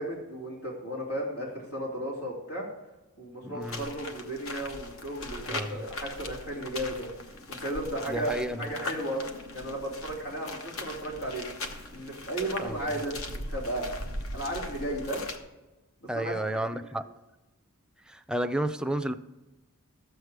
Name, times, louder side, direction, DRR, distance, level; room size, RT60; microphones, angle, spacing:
voice 1, 0.0-2.7 3.2-7.1 7.5-8.3 8.6-9.3 9.5-11.4 11.9-13.9 14.3-15.2 16.1-16.3 16.6-16.7, right 1 dB, 85° left, 2.9 m, -34 dB
voice 2, 3.4-3.9 5.5-5.7 8.1-8.6 12.6-12.8 16.1-17.0 18.1-19.1, right 1 dB, 5° right, 0.4 m, -31 dB
sound 1, 3.6-15.4, left 2 dB, 65° left, 1.1 m, -40 dB
13.0 x 8.0 x 4.8 m
head